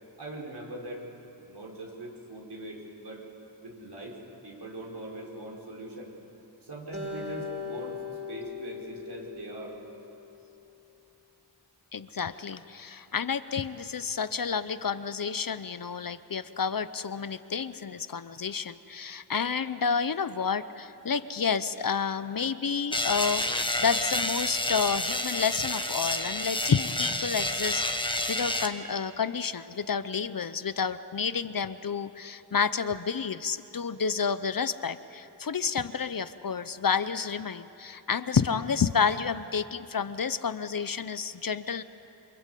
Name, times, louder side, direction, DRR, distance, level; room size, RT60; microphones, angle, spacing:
voice 1, 0.2-1.1 1.4-3.2 3.6-4.2 4.4-6.1 6.6-8.0 8.3-9.8, right 1 dB, 70° right, -2 dB, 5.6 m, -41 dB
Acoustic guitar, 6.9-10.3, left 5 dB, 35° right, 5.6 m, -39 dB
voice 2, 11.9-41.8, left 6 dB, 50° left, 13 dB, 0.8 m, -30 dB
sound 1, 22.9-28.7, left 1 dB, 10° left, 1.5 m, -29 dB
28.5 x 25.0 x 8.4 m, 3.0 s
wide cardioid pair, 95°, 42 cm